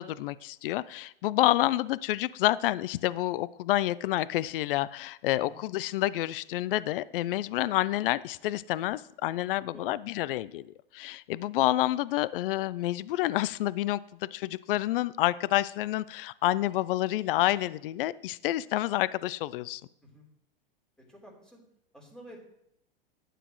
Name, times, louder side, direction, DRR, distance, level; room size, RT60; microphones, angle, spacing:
voice 1, 0.0-10.6 10.9-14.0 14.3-19.8, left 15 dB, 65° left, 19 dB, 0.5 m, -28 dB
voice 2, 21.1-21.6 21.9-22.5, equal, 5° left, -2 dB, 3.6 m, -50 dB
12.0 x 9.2 x 3.1 m, 0.77 s
hypercardioid pair, 115°, 29 cm